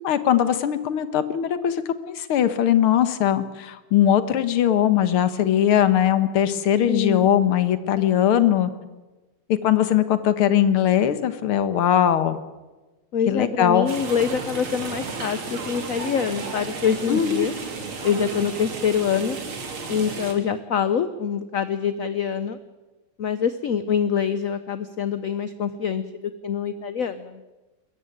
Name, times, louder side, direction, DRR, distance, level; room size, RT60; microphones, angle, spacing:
voice 1, 0.0-8.7 9.5-12.4 13.3-13.9 17.1-17.5, left 10 dB, 85° left, 12 dB, 2.1 m, -20 dB
voice 2, 6.9-7.3 13.1-17.5 18.0-19.4 19.9-22.6 23.2-27.4, left 7 dB, 60° left, 12 dB, 0.9 m, -25 dB
sound 1, 13.9-20.3, right 4 dB, 80° right, 3.3 m, -33 dB
21.5 x 14.5 x 9.3 m, 1.2 s
omnidirectional pair, 2.3 m